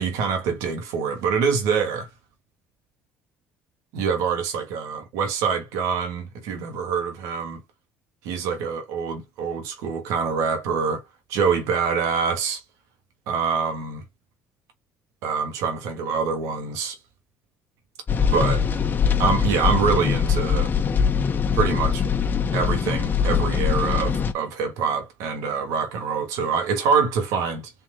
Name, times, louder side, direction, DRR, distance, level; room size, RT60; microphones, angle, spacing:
voice 1, 0.0-2.1 3.9-7.6 8.2-11.0 11.3-12.6 13.3-14.0 15.2-17.0 18.2-18.6 19.2-20.7 21.5-22.0 22.5-27.7, right 6 dB, 75° right, 1.8 m, -25 dB
sound 1, 18.1-24.3, left 7 dB, 35° left, 1.1 m, -22 dB
4.3 x 2.9 x 3.9 m
supercardioid pair, 75°, 5 cm